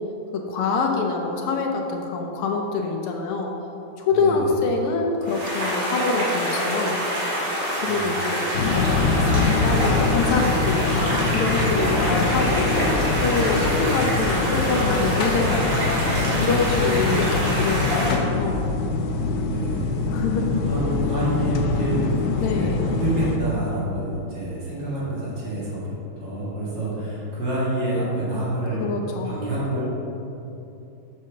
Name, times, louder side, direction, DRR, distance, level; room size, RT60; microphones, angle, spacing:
voice 1, 0.3-3.5 4.0-7.0 7.8-8.5 8.7-12.7 13.2-16.0 16.4-18.6 20.1-20.5 22.4-22.8 28.8-29.3, left 4 dB, 85° left, 1 dB, 1.7 m, -25 dB
voice 2, 4.1-4.5 7.8-8.2 19.3-20.2 20.7-28.9 29.2-29.9, right 1 dB, 55° right, -8 dB, 2.9 m, -28 dB
sound 1, 5.2-18.1, equal, 40° right, 2.4 m, -26 dB
sound 2, 8.5-23.4, left 3 dB, 70° left, 1.1 m, -24 dB
7.4 x 5.4 x 6.4 m, 2.9 s
omnidirectional pair, 2.4 m